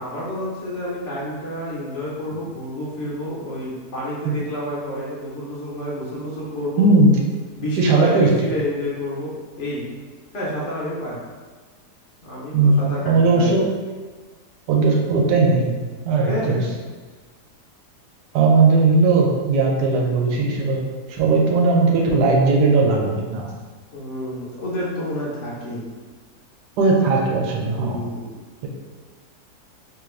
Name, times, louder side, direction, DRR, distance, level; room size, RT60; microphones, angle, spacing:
voice 1, 0.0-6.9 7.6-9.8 10.3-11.2 12.2-13.5 16.3-16.7 23.9-25.9 27.8-28.3, equal, 60° left, -7 dB, 0.9 m, -29 dB
voice 2, 6.8-7.2 7.8-8.3 12.5-13.7 14.7-15.8 16.0-16.7 18.3-23.5 26.8-28.0 28.6-28.7, right 3 dB, 90° right, 0 dB, 1.2 m, -18 dB
2.9 x 2.4 x 3.1 m, 1.4 s
omnidirectional pair, 1.7 m